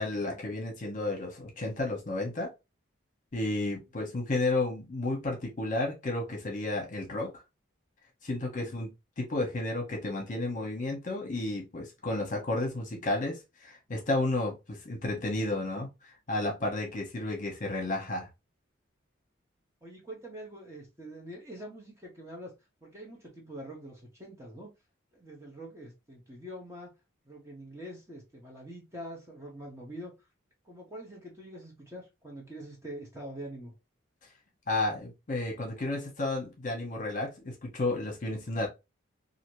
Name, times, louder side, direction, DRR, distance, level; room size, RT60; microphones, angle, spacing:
voice 1, 0.0-2.5 3.3-7.4 8.2-8.9 9.2-18.3 34.7-38.7, left 2 dB, 40° left, 0.9 m, -32 dB
voice 2, 19.8-22.5 22.8-24.7 25.1-26.9 27.2-30.3 30.6-33.7, right 1 dB, 15° right, 0.8 m, -45 dB
2.8 x 2.5 x 3.0 m
head